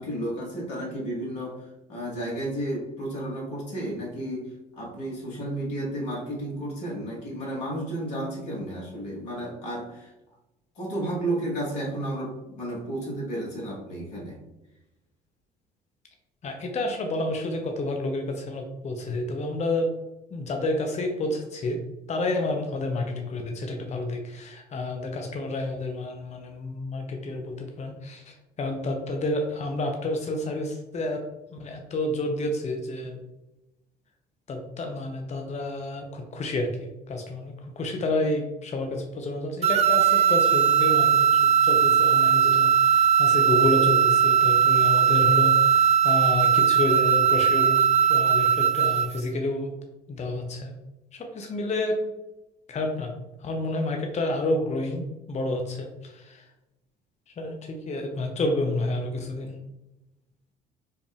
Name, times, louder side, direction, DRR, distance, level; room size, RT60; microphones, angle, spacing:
voice 1, 0.0-4.5 4.8-10.1 10.8-14.4, right 1 dB, 80° left, -4 dB, 1.4 m, -32 dB
voice 2, 16.4-19.9 20.3-21.8 22.1-31.2 31.5-33.2 34.5-49.7 50.1-50.8 51.1-52.0 52.7-53.1 53.4-56.4 57.4-59.6, left 2 dB, 35° left, 3 dB, 0.7 m, -30 dB
sound 1, 39.6-49.2, right 8 dB, 30° right, 0.4 m, -19 dB
5.4 x 2.1 x 3.4 m, 0.96 s
figure-of-eight pair, 50°, 21 cm